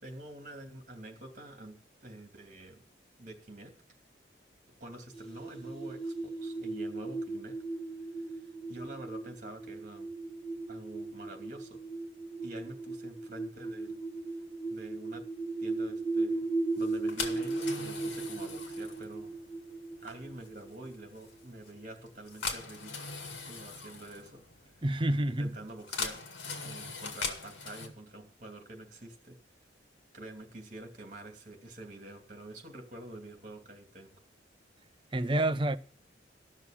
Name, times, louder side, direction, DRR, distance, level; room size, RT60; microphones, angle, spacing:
voice 1, 0.0-2.8 3.2-3.7 4.8-7.6 8.2-10.1 10.7-11.8 12.4-14.0 14.7-15.2 15.6-16.5 16.8-19.3 20.0-22.9 23.4-24.4 25.4-26.2 26.6-29.4 30.1-34.1, right 1 dB, 40° right, 2.7 m, -47 dB
sound 1, 5.1-21.4, right 3 dB, 30° left, 4.2 m, -37 dB
sound 2, 16.8-27.9, left 4 dB, 90° left, 2.2 m, -41 dB
voice 2, 24.8-25.6 35.1-35.8, right 1 dB, 25° right, 0.6 m, -28 dB
14.0 x 6.5 x 7.3 m
head